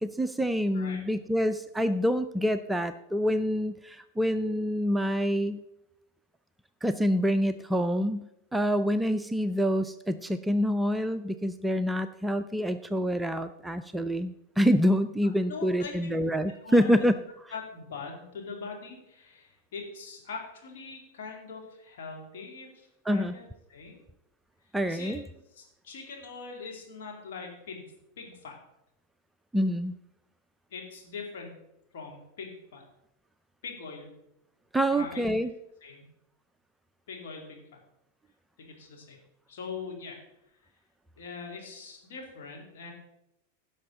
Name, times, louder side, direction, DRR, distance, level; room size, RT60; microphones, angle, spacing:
voice 1, 0.0-5.6 6.8-8.3 8.5-17.1 23.1-23.4 24.7-25.2 29.5-29.9 34.7-35.5, equal, 5° right, 10 dB, 0.4 m, -26 dB
voice 2, 15.2-16.1 16.5-17.0 17.5-23.4 23.7-24.0 24.9-25.3 25.5-27.9 28.2-28.6 30.7-31.5 31.9-32.8 33.6-34.1 34.9-35.2 35.8-36.0 37.1-37.8 38.6-39.2 39.5-40.2 41.2-42.9, left 5 dB, 55° left, 0 dB, 2.6 m, -42 dB
16.0 x 6.4 x 3.9 m, 0.84 s
figure-of-eight pair, 90°, 0 cm